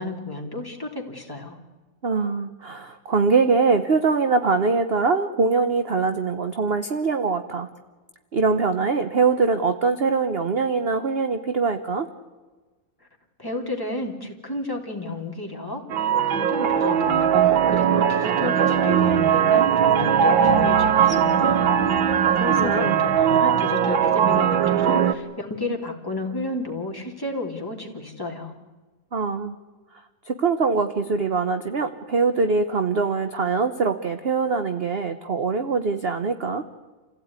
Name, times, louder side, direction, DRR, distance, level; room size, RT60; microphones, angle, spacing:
voice 1, 0.0-1.6 13.4-17.3 17.7-21.7 22.4-28.5, left 2 dB, 10° left, 0 dB, 3.2 m, -32 dB
voice 2, 2.0-7.7 8.3-12.1 22.6-23.0 29.1-29.5 30.2-36.6, right 4 dB, 40° right, 8 dB, 1.0 m, -23 dB
sound 1, 15.9-25.1, right 8 dB, 85° right, 1.9 m, -19 dB
28.5 x 16.5 x 9.7 m, 1.3 s
omnidirectional pair, 2.1 m